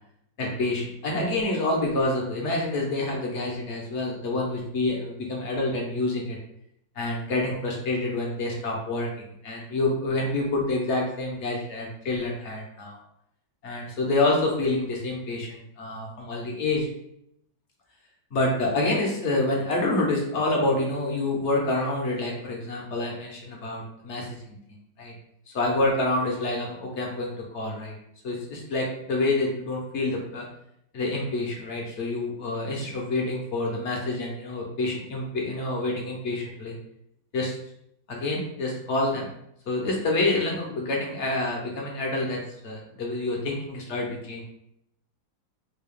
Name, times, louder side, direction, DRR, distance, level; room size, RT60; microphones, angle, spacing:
voice 1, 0.4-6.4 7.0-9.1 9.4-13.0 13.6-16.9 18.3-24.6 25.0-25.1 25.5-27.9 28.2-30.4 30.9-36.8 37.3-37.6 38.1-39.3 39.7-44.4, left 2 dB, 50° left, -1 dB, 0.9 m, -27 dB
4.5 x 2.3 x 3.5 m, 0.75 s
omnidirectional pair, 2.0 m